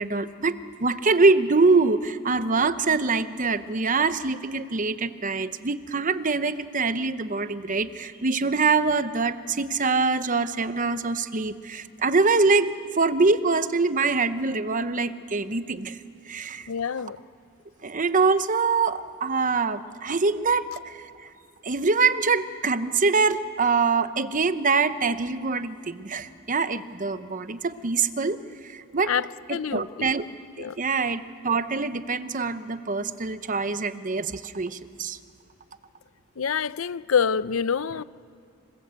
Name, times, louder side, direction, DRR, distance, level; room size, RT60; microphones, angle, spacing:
voice 1, 0.0-16.0 16.3-16.7 17.8-21.0 21.6-28.4 28.6-29.1 29.5-30.2 30.6-35.2, right 4 dB, 40° right, 12 dB, 0.9 m, -24 dB
voice 2, 16.7-17.2 29.1-30.2 30.6-30.8 36.4-38.0, left 6 dB, 70° left, 16 dB, 0.6 m, -27 dB
27.5 x 20.0 x 8.2 m, 2.5 s
head